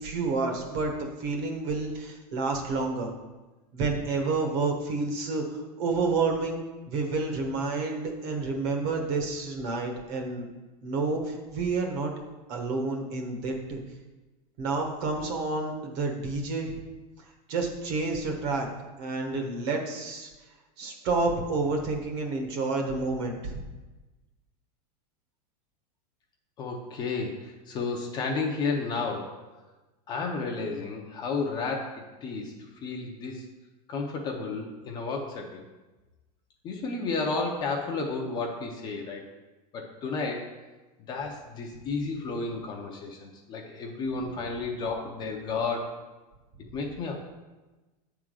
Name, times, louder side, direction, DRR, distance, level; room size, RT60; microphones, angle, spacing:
voice 1, 0.0-3.1 3.7-6.6 6.9-10.5 10.8-12.1 12.5-13.8 14.6-16.8 17.5-18.7 19.0-20.3 20.8-23.6, right 3 dB, 45° right, 2 dB, 1.2 m, -29 dB
voice 2, 26.6-29.4 30.1-32.5 32.8-33.4 33.9-35.6 36.6-39.2 39.7-40.5 41.1-46.0 46.7-47.2, left 4 dB, 20° left, 1 dB, 0.6 m, -32 dB
8.1 x 3.7 x 6.2 m, 1.2 s
supercardioid pair, 170°, 20 cm